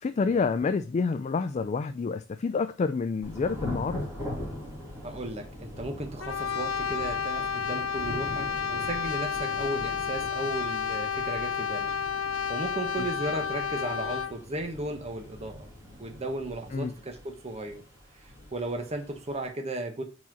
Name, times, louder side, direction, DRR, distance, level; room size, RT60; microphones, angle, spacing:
voice 1, 0.0-4.0 16.7-16.9, left 4 dB, 35° left, 0.3 m, -28 dB
Thunder / Rain, 3.2-19.5, left 1 dB, 15° right, 2.6 m, -42 dB
voice 2, 5.0-11.9 12.2-15.7 16.0-17.8 18.5-20.0, right 2 dB, 30° right, 1.0 m, -35 dB
Brass instrument, 6.2-14.4, left 7 dB, 80° left, 0.7 m, -31 dB
4.8 x 4.2 x 5.9 m
head